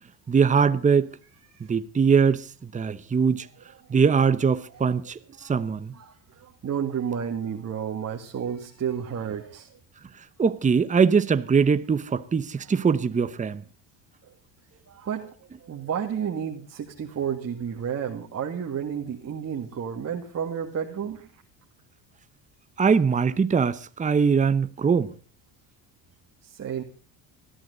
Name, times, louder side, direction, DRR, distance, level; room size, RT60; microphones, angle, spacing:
voice 1, 0.3-1.1 1.7-3.5 3.9-5.9 10.4-13.6 22.8-25.1, right 6 dB, 15° right, 0.9 m, -22 dB
voice 2, 5.4-9.7 14.9-15.3 15.6-21.3 26.4-26.8, right 8 dB, 35° right, 2.1 m, -31 dB
21.5 x 14.0 x 4.0 m
cardioid pair, 120°, 43 cm